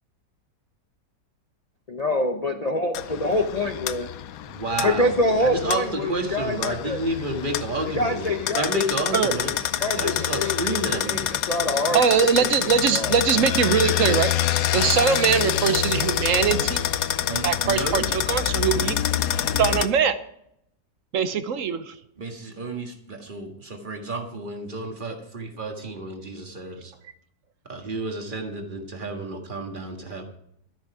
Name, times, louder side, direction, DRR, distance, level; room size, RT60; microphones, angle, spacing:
voice 1, 1.9-4.1 4.8-7.2 7.9-8.8 9.7-12.0 12.4-12.5 12.9-13.2, left 1 dB, 40° left, 4 dB, 0.6 m, -26 dB
sound 1, 2.9-19.9, left 11 dB, 65° left, 1.0 m, -27 dB
voice 2, 4.5-9.5 9.9-11.3 17.3-18.1 22.2-26.9 27.7-30.2, right 2 dB, 30° right, 4 dB, 1.7 m, -30 dB
voice 3, 11.9-14.5 14.7-16.9 17.4-19.0 19.6-20.2 21.1-21.9, right 7 dB, 60° right, 12 dB, 1.0 m, -22 dB
13.0 x 9.3 x 4.8 m, 0.72 s
omnidirectional pair, 1.9 m